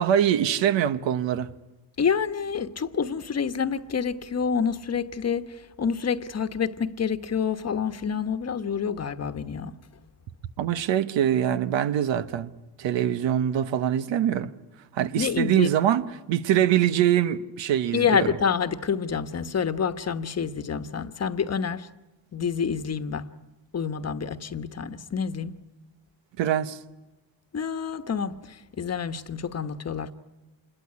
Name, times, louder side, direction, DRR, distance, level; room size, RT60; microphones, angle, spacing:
voice 1, 0.0-1.5 10.6-12.5 12.8-14.5 14.9-18.3 26.4-26.8, right 10 dB, 90° right, 1.2 m, -23 dB
voice 2, 2.0-9.8 15.2-15.7 17.9-21.9 22.3-23.3 23.7-25.5 27.5-30.1, left 6 dB, 35° left, 1.2 m, -28 dB
27.5 x 21.5 x 9.6 m
cardioid pair, 125°, 44 cm